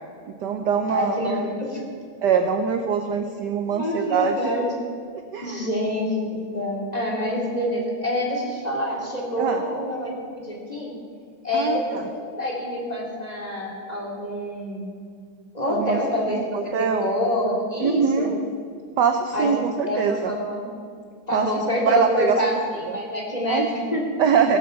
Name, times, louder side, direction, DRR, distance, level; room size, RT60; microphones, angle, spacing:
voice 1, 0.3-1.4 2.2-4.5 5.3-5.7 9.4-9.6 11.5-11.8 15.7-16.0 16.3-17.1 17.8-18.3 19.0-20.3 21.3-21.5 21.9-22.4 22.9-23.0 23.5-23.7 24.2-24.6, right 7 dB, 65° right, 7 dB, 1.1 m, -23 dB
voice 2, 0.9-1.4 1.7-1.8 3.7-4.7 5.4-10.9 11.4-14.9 15.5-18.3 19.3-20.6 21.3-24.1, left 1 dB, 20° left, -3 dB, 2.5 m, -26 dB
16.5 x 7.7 x 7.0 m, 2.2 s
omnidirectional pair, 2.4 m